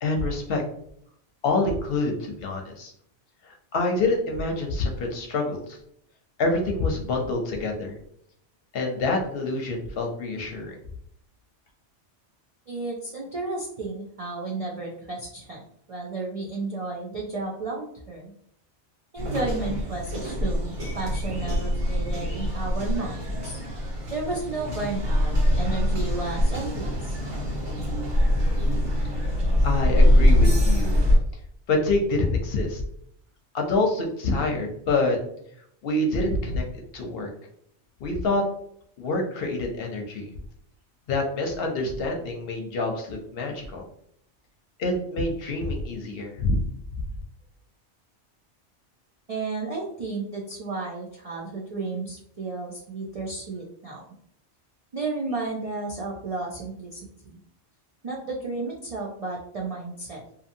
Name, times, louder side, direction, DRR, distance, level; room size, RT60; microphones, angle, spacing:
voice 1, 0.0-0.6 1.4-2.9 3.4-5.8 6.4-8.0 8.7-10.7 29.6-31.0 31.7-32.8 33.5-35.2 35.8-36.6 36.9-37.3 38.0-38.4 39.0-40.3 41.1-43.8 44.8-46.6, left 2 dB, 60° left, 2 dB, 0.7 m, -26 dB
voice 2, 12.7-15.6 15.9-18.3 19.1-23.6 24.1-27.2 49.3-54.0 54.9-57.4 58.0-60.2, right 3 dB, 60° right, -2 dB, 0.3 m, -33 dB
sound 1, 19.2-31.2, equal, 85° right, 1.4 m, -23 dB
2.7 x 2.5 x 2.6 m, 0.68 s
omnidirectional pair, 1.2 m